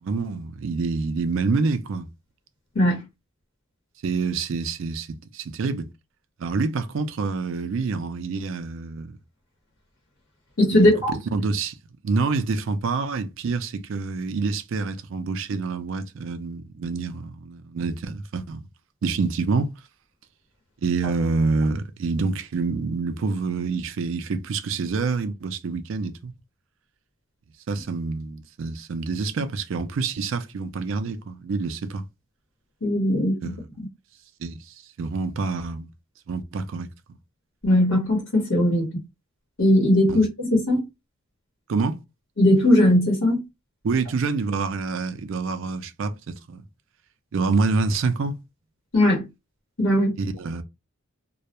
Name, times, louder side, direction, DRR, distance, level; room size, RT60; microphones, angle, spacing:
voice 1, 0.0-2.1 4.0-5.9 6.4-9.2 10.7-11.8 12.0-18.6 19.0-19.7 20.8-26.3 27.7-32.0 33.1-33.7 34.4-35.9 36.3-36.9 40.1-40.2 41.7-42.0 43.8-46.6 47.3-48.4 50.2-50.6, right 4 dB, 65° right, 0.4 m, -27 dB
voice 2, 10.6-11.1 32.8-33.5 37.6-38.9 39.6-40.8 42.4-43.4 48.9-49.3 49.8-50.1, left 1 dB, 70° left, 1.0 m, -19 dB
2.3 x 2.1 x 2.8 m
head